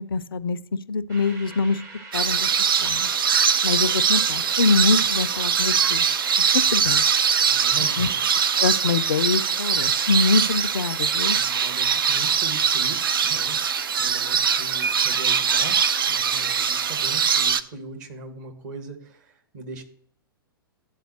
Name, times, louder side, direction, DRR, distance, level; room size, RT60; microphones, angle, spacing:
voice 1, 0.0-1.8 2.1-2.5 2.8-3.1 3.6-6.1 6.5-7.0 7.8-8.1 8.6-11.4, left 4 dB, 70° left, 16 dB, 0.4 m, -24 dB
sound 1, 1.1-12.0, right 3 dB, 20° right, 0.8 m, -42 dB
sound 2, 2.1-17.6, right 7 dB, 70° right, 0.4 m, -22 dB
voice 2, 7.4-8.2 11.3-15.8 16.1-19.8, right 4 dB, 50° right, 5 dB, 1.4 m, -39 dB
11.5 x 4.1 x 2.7 m, 0.66 s
figure-of-eight pair, 105°, 12 cm